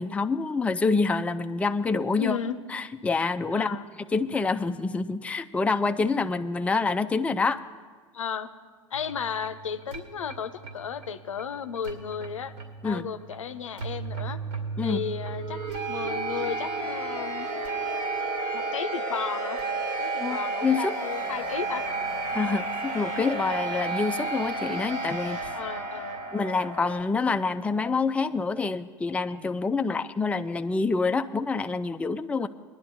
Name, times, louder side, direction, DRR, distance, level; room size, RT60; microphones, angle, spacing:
voice 1, 0.0-2.4 2.7-3.8 4.1-7.6 12.8-13.1 14.8-15.0 20.2-20.9 22.3-25.5 26.3-32.5, left 4 dB, 10° left, 9 dB, 0.4 m, -27 dB
voice 2, 2.1-2.6 3.5-3.9 8.1-8.5 8.9-12.5 12.8-14.4 14.8-15.6 15.9-17.5 18.5-19.6 20.0-21.8 25.5-26.2 29.8-30.0 32.4-32.5, left 7 dB, 80° left, 10 dB, 0.6 m, -34 dB
sound 1, 8.9-27.0, right 3 dB, 65° right, 2.4 m, -33 dB
22.0 x 10.5 x 2.6 m, 1.5 s
figure-of-eight pair, 75°, 16 cm